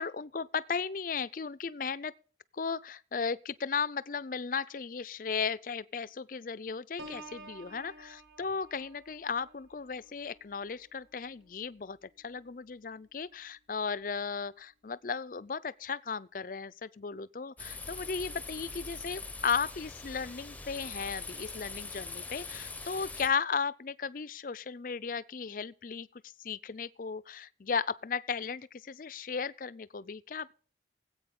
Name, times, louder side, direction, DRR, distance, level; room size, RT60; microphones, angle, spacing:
voice 1, 0.0-2.1 2.5-26.1 26.4-30.5, left 5 dB, 50° left, 0.5 m, -35 dB
Piano, 7.0-12.6 13.1-13.4, right 1 dB, 75° right, 2.2 m, -52 dB
sound 1, 17.6-23.3, left 3 dB, 10° left, 0.8 m, -42 dB
18.0 x 8.5 x 3.8 m
head